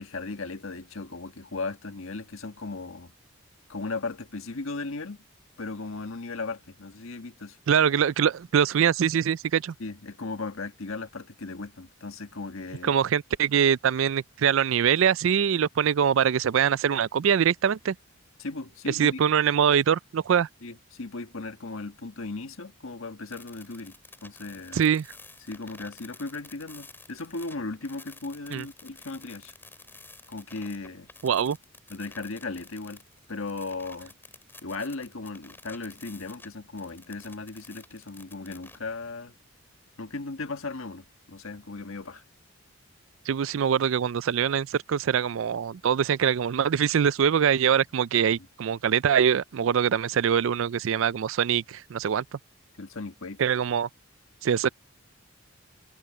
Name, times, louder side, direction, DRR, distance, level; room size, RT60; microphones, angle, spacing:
voice 1, 0.0-3.1 3.7-5.2 5.6-7.6 9.8-13.0 18.4-19.2 20.6-24.0 24.2-24.8 25.4-29.5 30.3-31.1 31.9-33.0 33.3-34.1 34.6-39.3 40.0-42.2 52.8-53.4, left 3 dB, 75° left, 1.6 m, -37 dB
voice 2, 7.7-9.7 12.8-17.9 19.0-20.5 24.7-25.1 28.5-28.6 31.2-31.6 43.3-52.2 53.4-53.9 54.4-54.7, right 8 dB, 65° right, 0.4 m, -23 dB
sound 1, 23.3-36.5 36.8-38.8, left 3 dB, 10° left, 6.3 m, -50 dB
head